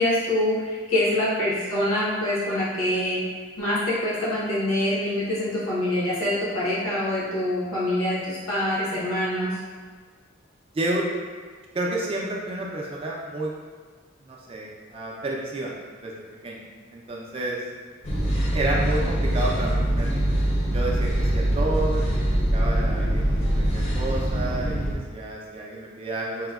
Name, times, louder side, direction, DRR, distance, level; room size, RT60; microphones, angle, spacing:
voice 1, 0.0-3.2 3.6-9.5, left 1 dB, 85° left, -8 dB, 0.9 m, -25 dB
voice 2, 11.7-13.6 14.2-15.7 16.0-16.1 16.4-16.6 16.9-17.6 18.5-20.3 20.7-22.1 22.5-26.5, right 2 dB, 25° right, -3 dB, 0.3 m, -30 dB
sound 1, 18.0-24.9, right 1 dB, 30° left, 0.5 m, -23 dB
4.8 x 2.1 x 2.3 m, 1.5 s
head